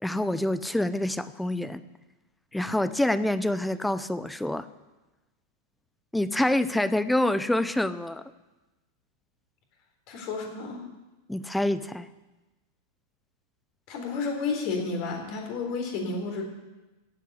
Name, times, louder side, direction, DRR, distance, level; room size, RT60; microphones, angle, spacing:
voice 1, 0.0-1.8 2.5-4.7 6.1-8.2 11.3-12.1, left 1 dB, 5° left, 14 dB, 0.7 m, -26 dB
voice 2, 10.1-10.8 13.9-16.4, left 4 dB, 45° left, 3 dB, 3.9 m, -31 dB
16.0 x 8.3 x 8.2 m, 1.1 s
figure-of-eight pair, 90°, 0 cm